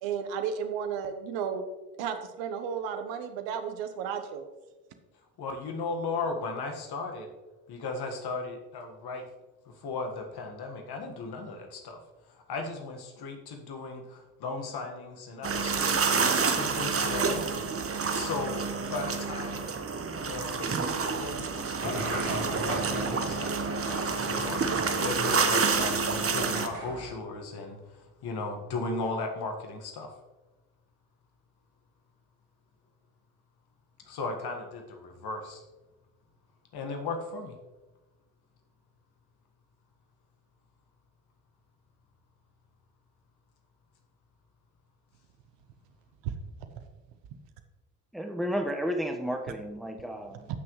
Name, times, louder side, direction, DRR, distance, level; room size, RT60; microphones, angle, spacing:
voice 1, 0.0-1.7 2.0-4.5 46.2-46.3 50.5-50.6, right 7 dB, 65° right, 8 dB, 1.1 m, -33 dB
voice 2, 5.4-7.3 7.7-9.2 9.8-12.0 12.5-17.6 18.1-18.6 18.9-19.6 20.2-22.2 22.6-27.8 28.2-30.1 34.1-35.6 36.7-37.5, left 3 dB, 55° left, 4 dB, 1.7 m, -36 dB
sound 1, 15.4-26.7, right 5 dB, 30° right, 1.1 m, -28 dB
sound 2, 21.8-27.1, right 1 dB, 80° right, 3.1 m, -37 dB
voice 3, 48.1-50.5, equal, ahead, 4 dB, 1.2 m, -32 dB
14.0 x 6.1 x 3.1 m, 1.1 s
hypercardioid pair, 50°, 47 cm